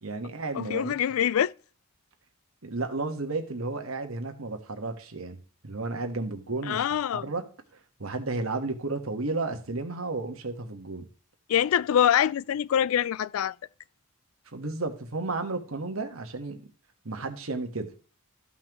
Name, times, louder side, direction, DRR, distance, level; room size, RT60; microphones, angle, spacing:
voice 1, 0.0-1.0 2.6-6.8 7.1-7.4 8.0-11.1 14.5-16.6 17.0-17.9, right 3 dB, 75° right, 1.5 m, -33 dB
voice 2, 0.5-1.5 6.7-7.3 11.5-13.5, left 9 dB, 70° left, 0.3 m, -24 dB
14.0 x 5.7 x 3.0 m
head